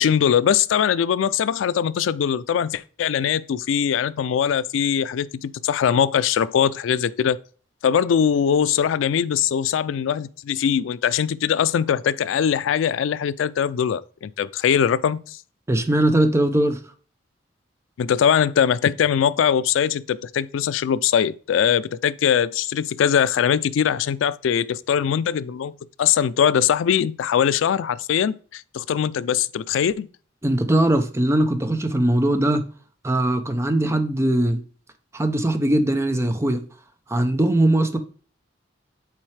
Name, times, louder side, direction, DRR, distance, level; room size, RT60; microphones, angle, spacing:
voice 1, 0.0-7.4 7.8-15.4 18.0-25.7 26.0-30.1, left 8 dB, 90° left, 0.3 m, -21 dB
voice 2, 15.7-16.8 30.4-32.6 33.0-34.6 35.1-36.6 37.1-38.0, right 1 dB, 15° right, 0.6 m, -20 dB
7.3 x 4.6 x 3.2 m
head